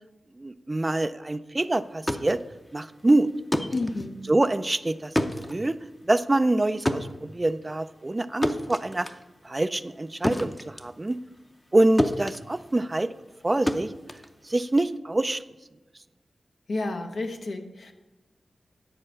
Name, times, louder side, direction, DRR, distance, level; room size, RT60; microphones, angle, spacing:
voice 1, 0.4-2.4 2.7-3.3 4.3-5.1 5.5-5.8 6.0-9.1 9.4-11.2 11.7-13.1 13.4-13.9 14.4-15.4, right 2 dB, 30° right, 13 dB, 0.4 m, -25 dB
sound 1, 1.8-11.7 12.0-15.0, left 1 dB, 15° left, 0.7 m, -31 dB
voice 2, 3.7-4.2 16.7-17.9, left 2 dB, 70° left, 4 dB, 1.0 m, -31 dB
9.8 x 4.4 x 6.6 m, 1.1 s
cardioid pair, 60°, 0 cm